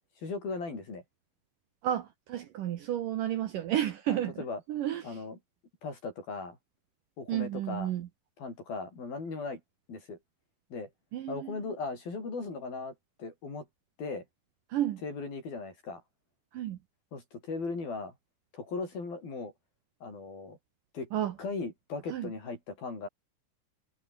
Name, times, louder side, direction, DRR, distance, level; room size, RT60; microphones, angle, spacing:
voice 1, 0.2-1.0 4.1-4.6 5.0-5.4 5.8-6.6 7.2-7.9 8.4-9.6 9.9-10.2 10.7-10.9 11.3-13.7 14.0-14.2 15.0-16.0 17.1-18.1 18.5-19.5 20.0-20.6 20.9-21.1 21.4-23.1, left 4 dB, 60° left, 9.9 m, -38 dB
voice 2, 1.8-4.4 4.7-5.2 7.3-8.1 11.1-11.6 14.7-15.0 16.5-16.8 21.1-21.3 22.1-22.3, right 11 dB, 65° right, 2.3 m, -32 dB
omnidirectional pair, 4.9 m